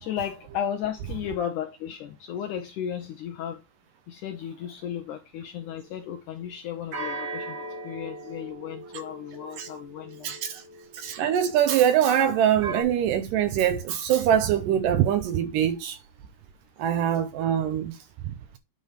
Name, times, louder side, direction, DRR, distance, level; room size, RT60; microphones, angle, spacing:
voice 1, 0.0-3.6 4.1-10.6, left 9 dB, 75° left, 1.8 m, -34 dB
sound 1, 5.6-6.2 6.9-11.8 12.6-12.8, right 2 dB, 45° right, 1.8 m, -38 dB
voice 2, 10.2-10.6 10.9-16.0 16.8-18.0 18.2-18.3, right 10 dB, 75° right, 2.1 m, -23 dB
9.4 x 3.5 x 5.6 m
omnidirectional pair, 4.4 m